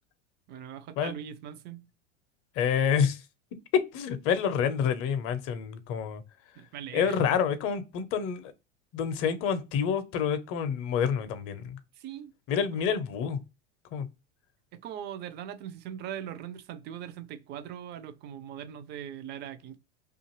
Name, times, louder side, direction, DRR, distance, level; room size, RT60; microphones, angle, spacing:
voice 1, 0.5-1.9 6.6-7.2 12.0-12.3 14.7-19.8, right 9 dB, 30° right, 0.4 m, -40 dB
voice 2, 2.6-3.2 3.7-6.2 6.9-8.5 8.9-11.8 12.5-13.4 13.9-14.1, left 7 dB, 40° left, 0.6 m, -28 dB
2.5 x 2.3 x 2.9 m
hypercardioid pair, 95°, 36 cm